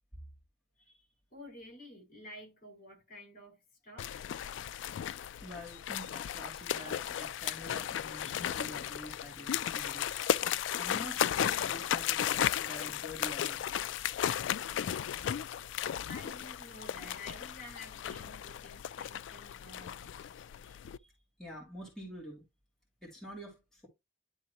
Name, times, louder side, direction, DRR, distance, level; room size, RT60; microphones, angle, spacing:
voice 1, 1.3-4.1 16.1-20.1, left 1 dB, 45° left, 3.9 m, -51 dB
sound 1, 4.0-21.0, left 10 dB, 80° left, 0.3 m, -35 dB
voice 2, 5.4-10.1 10.8-13.6 21.0-21.1 21.4-22.5 23.0-23.9, left 1 dB, ahead, 2.6 m, -47 dB
11.0 x 3.7 x 2.9 m
head